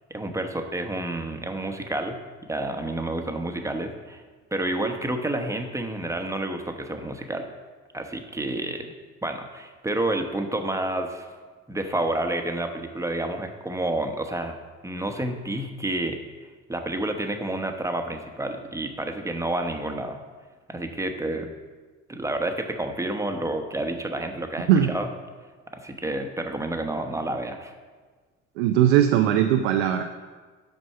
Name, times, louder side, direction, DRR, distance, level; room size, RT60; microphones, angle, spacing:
voice 1, 0.1-2.2 2.5-4.2 4.5-7.5 7.9-8.9 9.2-11.3 11.7-14.6 14.8-16.2 16.7-20.2 20.7-21.5 22.1-25.1 25.7-27.7, right 1 dB, 10° right, 5 dB, 1.0 m, -29 dB
voice 2, 28.6-30.0, right 10 dB, 80° right, 5 dB, 0.6 m, -19 dB
7.8 x 5.3 x 5.6 m, 1.4 s
hypercardioid pair, 65°, 33 cm